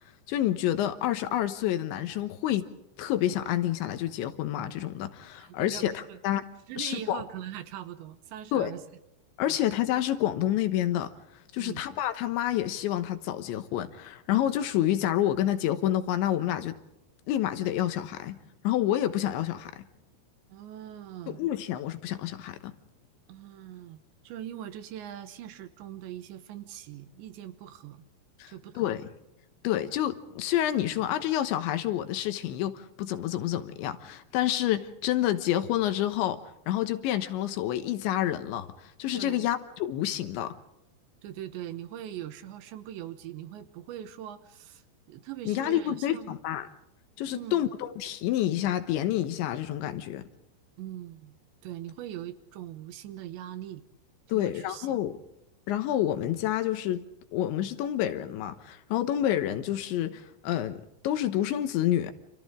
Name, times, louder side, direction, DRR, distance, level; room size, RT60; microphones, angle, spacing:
voice 1, 0.3-2.7 3.0-6.4 6.8-7.2 8.5-8.7 9.4-11.1 11.5-16.8 17.3-18.4 18.6-19.8 21.3-22.7 28.4-29.0 29.6-40.6 45.5-46.7 47.2-50.2 54.3-55.2 55.7-57.0 57.3-62.1, left 12 dB, 75° left, 3.3 m, -28 dB
voice 2, 5.4-6.2 6.7-8.8 9.5-9.6 11.6-11.9 20.5-21.4 23.3-28.0 28.5-28.9 39.1-39.5 41.2-44.8 45.1-46.4 47.3-47.7 50.8-51.4 51.6-53.8 54.3-55.0, right 11 dB, 75° right, 3.1 m, -41 dB
30.0 x 27.5 x 3.7 m
omnidirectional pair, 5.6 m